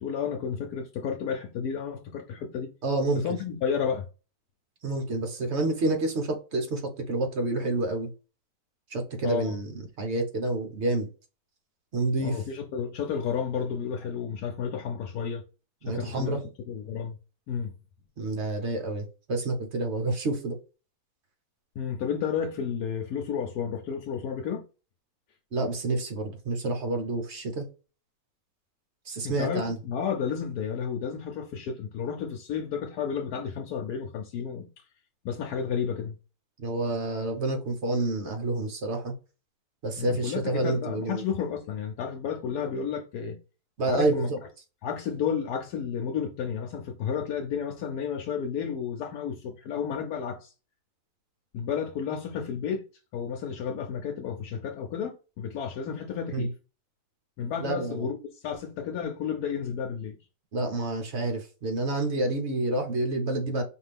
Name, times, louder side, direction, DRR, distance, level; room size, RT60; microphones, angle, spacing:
voice 1, 0.0-2.7 3.1-4.0 9.2-9.6 12.2-15.4 15.9-16.4 16.7-17.2 17.5-17.7 21.8-24.6 29.2-34.7 35.2-36.2 40.0-43.4 43.9-44.3 44.8-50.5 51.5-52.8 53.1-56.5 57.4-60.2, left 7 dB, 85° left, 1.2 m, -32 dB
voice 2, 2.8-3.2 4.8-8.1 8.9-9.7 10.0-11.1 11.9-12.4 15.8-16.4 18.2-20.6 25.5-27.7 29.1-29.8 36.6-39.1 39.8-41.2 43.8-44.4 56.3-56.5 57.6-58.1 60.5-63.6, right 2 dB, 50° right, 1.1 m, -28 dB
5.1 x 2.7 x 3.4 m
omnidirectional pair, 1.6 m